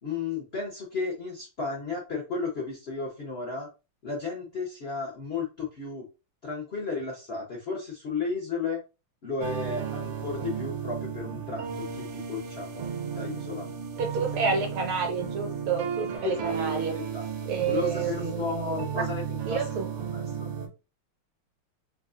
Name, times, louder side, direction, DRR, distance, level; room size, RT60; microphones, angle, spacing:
voice 1, 0.0-3.7 4.0-6.1 6.4-8.8 9.2-12.9 13.1-13.7 16.2-17.2 17.6-19.2 19.5-19.6 20.1-20.5, left 4 dB, 80° left, 0.5 m, -33 dB
sound 1, 9.4-20.7, right 7 dB, 90° right, 1.6 m, -34 dB
voice 2, 14.0-17.0 17.5-19.1 19.5-19.9, right 5 dB, 75° right, 1.6 m, -29 dB
4.0 x 2.3 x 2.4 m
omnidirectional pair, 2.4 m